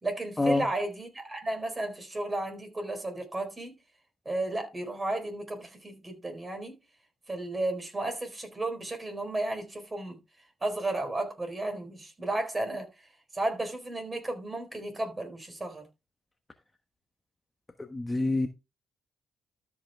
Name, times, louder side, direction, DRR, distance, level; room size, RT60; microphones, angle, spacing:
voice 1, 0.0-3.7 4.2-6.7 7.3-10.2 10.6-12.9 13.3-15.8, right 2 dB, 20° right, 4.2 m, -33 dB
voice 2, 17.9-18.5, left 2 dB, 15° left, 1.2 m, -26 dB
13.0 x 5.7 x 3.5 m
cardioid pair, 90°, 0 cm